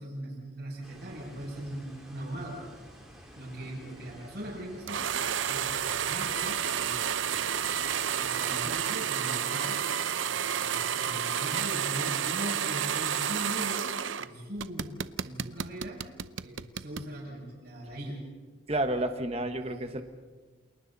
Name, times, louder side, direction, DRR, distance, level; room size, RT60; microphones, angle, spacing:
voice 1, 0.0-2.7 3.3-5.2 5.5-7.5 8.1-9.8 10.1-16.1 16.4-18.3, right 1 dB, 60° right, -9 dB, 6.7 m, -40 dB
sound 1, 0.8-8.9, equal, 5° right, 4.6 m, -51 dB
sound 2, 4.9-14.3 14.6-17.1, right 8 dB, 75° right, 0.7 m, -30 dB
voice 2, 18.7-20.0, right 1 dB, 30° right, 7 dB, 1.4 m, -30 dB
29.0 x 28.0 x 4.2 m, 1.3 s
head